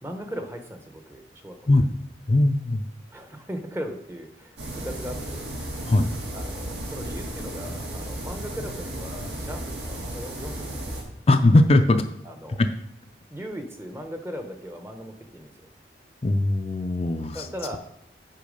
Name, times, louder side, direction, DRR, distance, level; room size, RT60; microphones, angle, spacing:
voice 1, 0.0-1.7 3.1-5.5 6.3-11.0 12.2-12.6 13.3-15.7 17.3-17.8, equal, 15° right, 5 dB, 0.8 m, -38 dB
voice 2, 2.3-2.9 5.9-6.1 11.3-12.0 12.6-12.7 16.2-17.5, left 2 dB, 35° left, 6 dB, 0.4 m, -19 dB
sound 1, 4.6-11.0, right 1 dB, 70° right, 2.0 m, -34 dB
8.4 x 5.6 x 5.2 m, 0.74 s
head